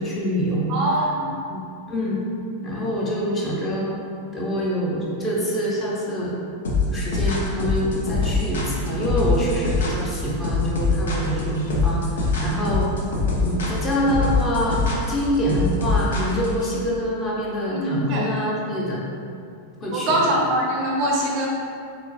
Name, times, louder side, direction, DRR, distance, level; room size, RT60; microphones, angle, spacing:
voice 1, 0.0-0.7 1.4-1.6 1.9-2.2 2.6-4.0 4.3-6.3 6.9-12.9 13.3-19.0 19.8-20.2, equal, 20° left, -5 dB, 0.6 m, -25 dB
voice 2, 0.7-1.3 17.7-18.3 19.9-21.5, right 1 dB, 40° right, -2 dB, 0.4 m, -23 dB
sound 1, 6.6-16.7, left 4 dB, 65° left, 0.5 m, -23 dB
3.7 x 2.0 x 2.7 m, 2.4 s
figure-of-eight pair, 90°, 0 cm